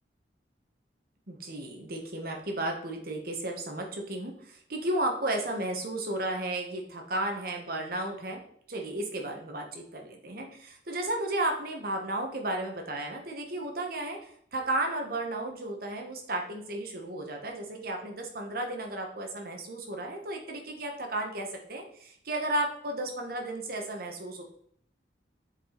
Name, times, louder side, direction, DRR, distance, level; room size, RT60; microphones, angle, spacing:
voice 1, 1.3-8.4 8.7-24.4, right 1 dB, 55° right, 2 dB, 1.4 m, -33 dB
7.6 x 4.8 x 4.0 m, 0.64 s
head